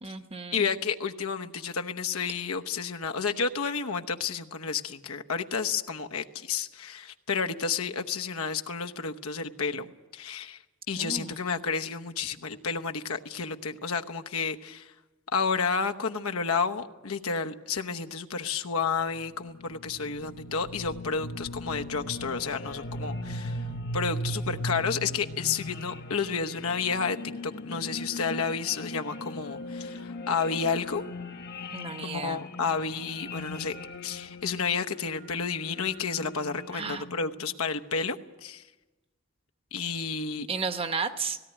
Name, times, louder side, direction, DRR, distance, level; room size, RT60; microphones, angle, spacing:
voice 1, 0.0-0.7 10.9-11.4 31.7-32.4 36.7-37.0 40.5-41.4, right 4 dB, 25° right, 9 dB, 0.9 m, -33 dB
voice 2, 0.5-9.9 10.1-10.6 10.9-14.9 15.3-23.6 23.9-27.2 27.4-31.0 32.0-33.8 34.0-38.6 39.7-40.5, left 5 dB, 85° left, 6 dB, 1.0 m, -31 dB
sound 1, 19.0-37.4, left 1 dB, 50° left, 1.0 m, -39 dB
17.5 x 17.5 x 10.0 m, 1.2 s
head